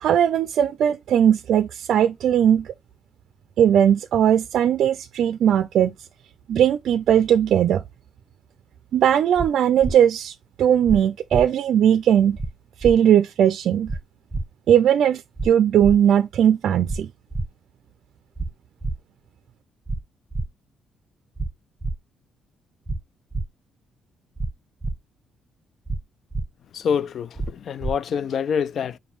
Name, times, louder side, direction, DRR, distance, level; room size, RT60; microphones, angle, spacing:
voice 1, 0.0-2.7 3.6-5.9 6.5-7.8 8.9-12.4 12.8-13.9 14.7-17.1, right 9 dB, 70° right, 0.4 m, -19 dB
sound 1, 9.4-9.5 9.8-9.9 10.9-11.0 11.3-11.4 12.4-12.5 12.8-12.9 13.9-14.0 14.3-14.4 15.4-15.5 15.8-16.0 16.9-17.0 17.3-17.5 18.4-18.5 18.8-18.9 19.9-20.0 20.3-20.5 21.4-21.5 21.8-21.9 22.9-23.0 23.3-23.4 24.4-24.5 24.8-24.9 25.9-26.0 26.3-26.4 27.4-27.5 27.8-27.9, right 2 dB, 10° right, 0.6 m, -27 dB
voice 2, 26.7-29.0, left 7 dB, 60° left, 0.3 m, -26 dB
5.2 x 2.2 x 4.5 m
cardioid pair, 90°, 0 cm